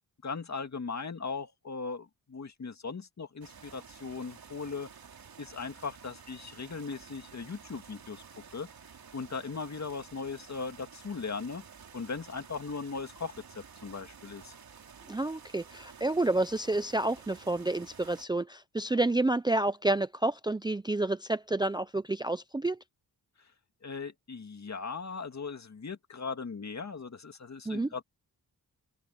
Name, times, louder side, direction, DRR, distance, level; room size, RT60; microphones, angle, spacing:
voice 1, 0.2-4.9 5.4-8.2 8.5-8.7 9.1-11.6 11.9-14.5 23.8-28.0, left 4 dB, 45° left, 2.3 m, -38 dB
sound 1, 3.4-18.3, right 6 dB, 70° right, 3.9 m, -52 dB
voice 2, 15.1-22.8 27.7-27.9, right 2 dB, 10° right, 0.5 m, -29 dB
open air
wide cardioid pair, 95°, 37 cm